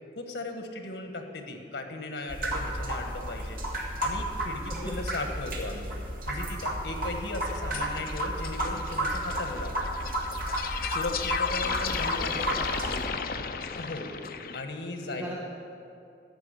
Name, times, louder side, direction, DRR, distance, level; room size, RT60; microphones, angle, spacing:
voice 1, 0.2-3.6 4.0-5.9 6.3-9.7 10.9-12.5 13.8-14.1 14.5-15.2, left 2 dB, 85° left, 5 dB, 1.3 m, -37 dB
sound 1, 2.3-13.1, right 1 dB, 50° right, 1.8 m, -33 dB
sound 2, 7.5-14.6, left 6 dB, 55° left, 0.5 m, -34 dB
voice 2, 11.6-13.2 14.1-14.2 15.0-15.4, equal, 10° right, -6 dB, 1.2 m, -41 dB
14.0 x 5.4 x 8.2 m, 2.5 s
head